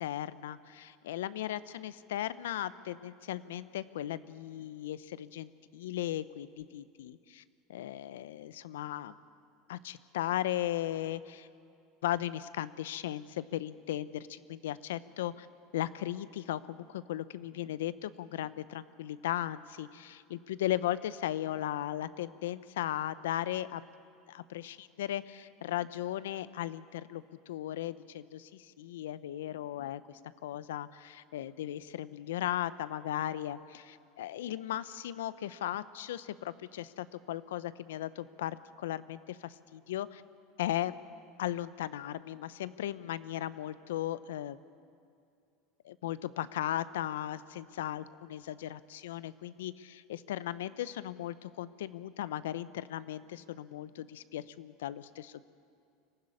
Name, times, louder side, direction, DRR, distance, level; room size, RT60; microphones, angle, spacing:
voice 1, 0.0-7.4 7.7-9.1 9.7-11.5 12.0-15.5 15.7-23.8 24.3-40.2 40.6-40.9 41.4-44.6 45.8-55.5, left 12 dB, 85° left, 16 dB, 0.7 m, -37 dB
23.5 x 15.0 x 9.8 m, 2.4 s
supercardioid pair, 105°, 0 cm